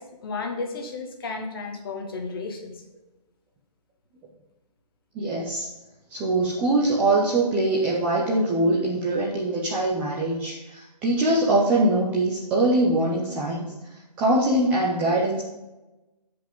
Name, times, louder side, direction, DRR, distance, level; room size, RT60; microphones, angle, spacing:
voice 1, 0.0-2.7, left 4 dB, 35° left, 3 dB, 1.5 m, -33 dB
voice 2, 5.1-5.7 6.1-13.6 14.2-15.4, right 2 dB, 5° right, -5 dB, 0.5 m, -23 dB
14.0 x 5.1 x 3.7 m, 1.0 s
figure-of-eight pair, 155°, 21 cm